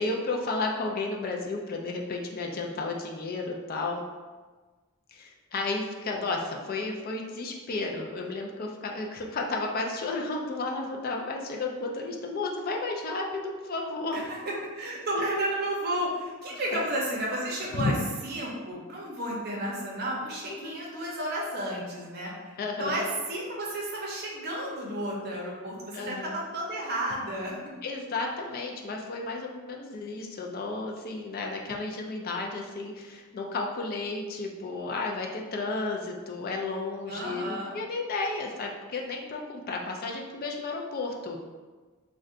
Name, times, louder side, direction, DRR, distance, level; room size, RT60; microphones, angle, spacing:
voice 1, 0.0-4.0 5.1-14.2 15.1-15.2 16.7-16.8 17.7-17.9 20.5-20.7 22.6-23.0 25.9-26.4 27.8-41.4, left 3 dB, 45° left, 1 dB, 0.3 m, -33 dB
voice 2, 14.1-17.9 18.2-22.3 22.8-27.7 37.1-37.7, right 1 dB, 45° right, -3 dB, 0.6 m, -32 dB
2.4 x 2.2 x 3.7 m, 1.4 s
head